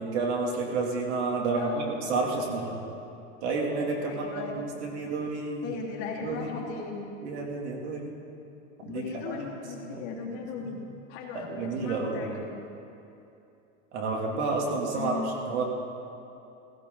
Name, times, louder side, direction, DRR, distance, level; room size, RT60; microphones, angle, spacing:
voice 1, 0.0-2.7 3.4-5.7 6.2-6.5 7.2-8.1 8.9-9.5 9.8-10.0 10.6-10.7 11.3-12.2 13.9-15.2 15.5-15.6, right 3 dB, 80° right, 0 dB, 3.0 m, -30 dB
voice 2, 1.6-2.0 4.1-4.5 5.6-7.0 8.8-10.8 11.1-12.5 14.9-15.4, left 5 dB, 50° left, -4 dB, 2.8 m, -37 dB
16.5 x 16.0 x 4.0 m, 2.7 s
supercardioid pair, 160°, 34 cm